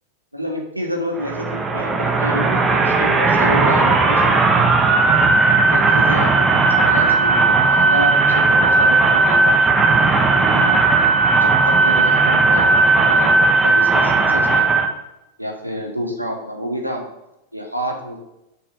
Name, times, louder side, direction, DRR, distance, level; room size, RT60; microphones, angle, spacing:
voice 1, 0.3-4.4 5.4-9.6 10.3-10.8 11.4-14.8 15.4-17.0 17.5-18.2, equal, 90° right, 1 dB, 1.7 m, -28 dB
sound 1, 1.2-14.9, right 3 dB, 15° right, 1.1 m, -16 dB
7.1 x 5.3 x 6.8 m, 0.91 s
figure-of-eight pair, 90°, 0 cm